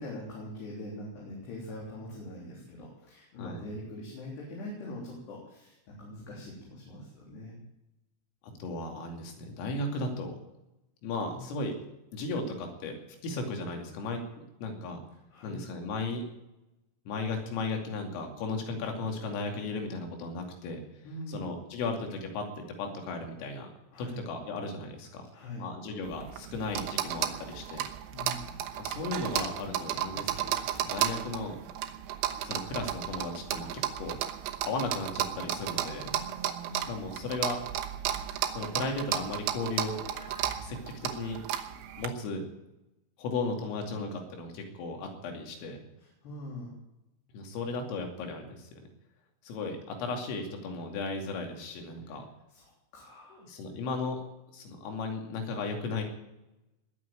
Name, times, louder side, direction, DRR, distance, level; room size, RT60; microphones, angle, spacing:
voice 1, 0.0-7.6 11.3-11.4 15.3-15.6 21.0-21.4 23.9-24.2 25.3-25.7 28.1-28.5 35.9-36.9 46.0-46.7 52.1-52.2 52.5-53.5, left 1 dB, 60° left, -4 dB, 5.5 m, -43 dB
voice 2, 3.4-3.7 8.4-10.4 11.0-11.8 12.1-12.9 13.2-14.2 14.6-15.0 15.4-16.2 17.1-20.8 21.3-23.7 24.0-25.3 25.6-27.8 28.8-31.6 32.4-33.7 34.0-34.2 34.7-36.1 36.7-37.6 38.5-40.0 40.6-41.4 42.0-42.5 43.2-45.8 47.3-48.9 49.4-52.3 53.3-54.2 54.5-56.0, left 3 dB, 90° left, 3 dB, 5.3 m, -35 dB
sound 1, 26.0-42.1, right 11 dB, 75° right, 3.3 m, -34 dB
Piano, 39.8-40.6, left 1 dB, 25° left, 5.6 m, -49 dB
20.5 x 7.9 x 9.0 m, 0.94 s
omnidirectional pair, 5.7 m